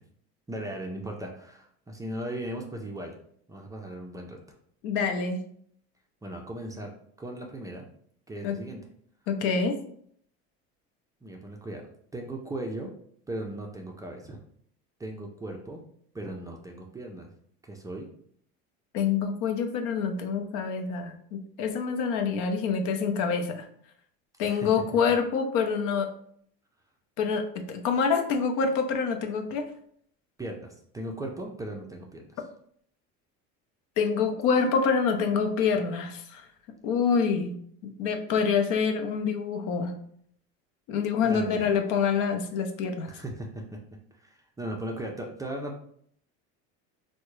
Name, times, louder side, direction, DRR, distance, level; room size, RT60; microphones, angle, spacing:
voice 1, 0.5-3.2 3.5-4.4 6.2-6.9 7.2-7.8 8.3-8.9 11.2-11.9 12.1-12.9 13.3-14.4 15.0-15.8 16.1-17.3 17.6-18.1 24.4-24.7 30.4-32.4 41.2-41.7 43.1-43.8 44.1-45.8, right 1 dB, 10° right, 1 dB, 0.4 m, -37 dB
voice 2, 4.8-5.4 8.4-8.6 9.3-9.8 18.9-23.7 24.4-26.1 27.2-29.7 34.0-36.4 36.8-37.6 38.0-40.0 40.9-43.1, left 5 dB, 70° left, 6 dB, 0.6 m, -26 dB
3.5 x 2.1 x 3.0 m, 0.63 s
supercardioid pair, 110°, 32 cm